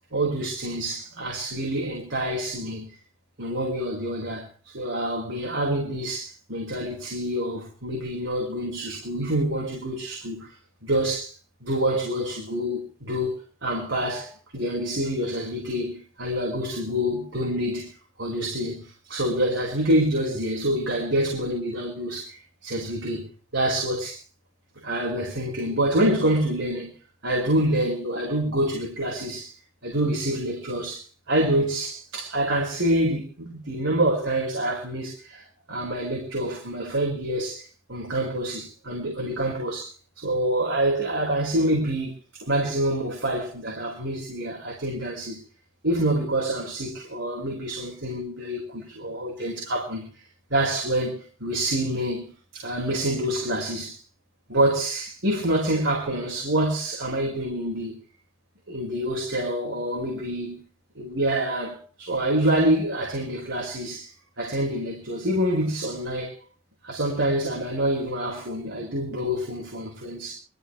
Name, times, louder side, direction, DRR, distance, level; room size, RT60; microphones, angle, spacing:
voice 1, 0.1-2.9 3.4-10.5 10.8-11.3 11.6-13.4 13.6-17.9 18.2-22.4 22.6-24.2 24.8-27.0 27.2-29.5 29.8-35.4 35.7-39.9 40.2-42.1 42.4-45.4 45.8-50.1 50.5-54.0 54.5-58.0 58.7-60.6 61.0-64.1 64.4-66.3 66.8-70.3, right 1 dB, 70° right, 5.3 m, -27 dB
23.0 x 15.0 x 3.3 m
head